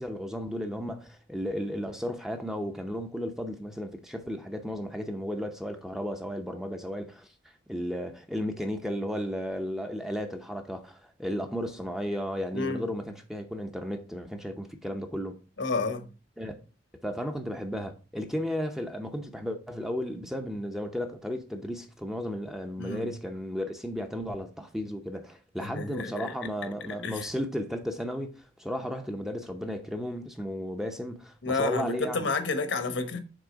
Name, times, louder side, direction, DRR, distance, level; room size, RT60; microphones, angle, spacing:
voice 1, 0.0-7.3 7.7-15.4 16.4-16.5 17.0-32.3, equal, ahead, 0.6 m, -34 dB
voice 2, 12.5-12.8 15.6-16.1 22.8-23.1 25.6-26.3 26.6-26.7 27.0-27.3 31.4-33.2, left 3 dB, 70° left, 1.0 m, -30 dB
6.2 x 3.7 x 4.9 m
head